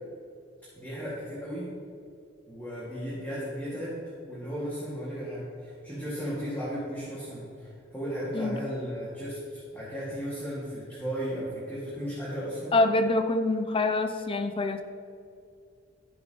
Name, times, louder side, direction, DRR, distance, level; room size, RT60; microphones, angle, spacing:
voice 1, 0.7-1.7 2.5-4.0 4.3-12.8, equal, 10° left, -10 dB, 2.1 m, -35 dB
voice 2, 12.7-14.8, left 2 dB, 25° left, 8 dB, 0.5 m, -25 dB
12.0 x 7.5 x 3.0 m, 2.5 s
head